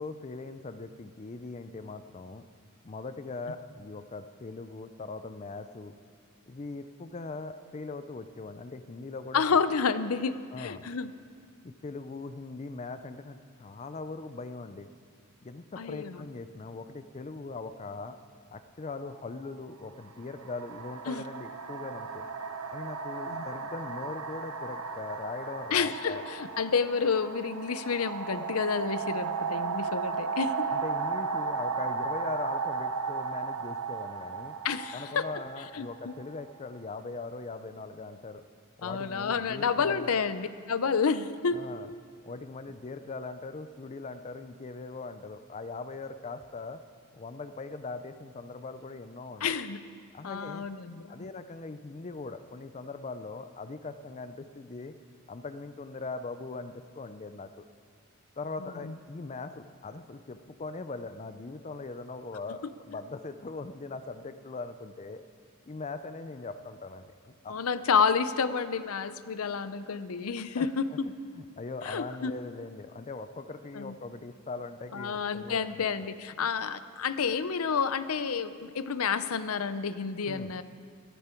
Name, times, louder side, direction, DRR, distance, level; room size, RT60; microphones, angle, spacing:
voice 1, 0.0-2.4 2.8-5.9 6.5-9.6 10.5-10.9 11.6-14.9 15.4-18.2 18.5-22.2 22.7-26.2 30.7-34.5 34.9-38.4 38.8-40.1 41.5-41.9 42.2-46.8 47.1-49.5 50.1-50.7 51.1-54.9 55.3-57.6 58.4-65.2 65.7-67.6 70.6-70.7 71.0-75.9 80.2-80.5, left 3 dB, 30° left, 10 dB, 0.5 m, -40 dB
voice 2, 9.3-11.1 15.8-16.3 21.1-21.2 23.3-23.4 25.7-30.7 34.6-35.3 35.7-36.1 38.8-41.6 49.4-49.8 50.2-51.3 58.8-58.9 67.5-70.9 71.8-72.3 73.7-73.9 74.9-80.6, left 5 dB, 70° left, 13 dB, 0.6 m, -30 dB
sound 1, 18.9-19.1 20.0-36.7, right 5 dB, 70° right, 0.9 m, -35 dB
18.0 x 13.5 x 4.5 m, 2.1 s
head